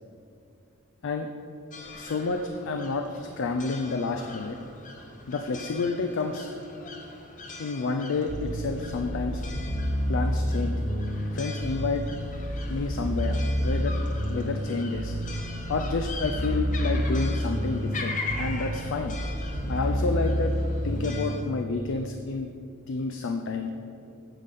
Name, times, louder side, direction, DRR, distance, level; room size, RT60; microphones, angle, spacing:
sound 1, 1.7-21.4, left 3 dB, 35° left, 0.8 m, -41 dB
voice 1, 1.9-4.6 5.3-6.5 7.6-9.4 10.1-10.8 11.3-12.1 12.7-14.0 14.3-15.2 15.7-19.2 19.7-20.6 20.8-22.5 22.9-23.7, left 3 dB, 60° left, 5 dB, 0.4 m, -30 dB
sound 2, 8.3-21.6, equal, 45° right, 1.2 m, -29 dB
8.9 x 6.5 x 4.1 m, 2.6 s
head